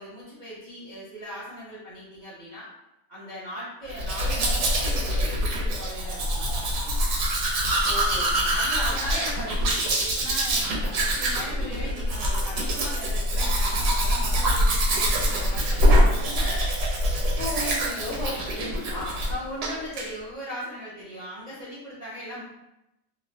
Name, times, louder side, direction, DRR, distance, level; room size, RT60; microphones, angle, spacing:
voice 1, 0.0-2.7 3.1-7.0 8.3-10.6 10.9-16.7 17.9-18.2 19.3-22.4, equal, 55° right, -10 dB, 0.4 m, -38 dB
Domestic sounds home sounds, 3.9-19.3 19.6-20.1, equal, 75° right, 1.1 m, -24 dB
voice 2, 7.8-8.3 17.4-19.2, left 1 dB, 70° left, -5 dB, 0.8 m, -34 dB
2.8 x 2.0 x 2.6 m, 0.89 s
omnidirectional pair, 1.8 m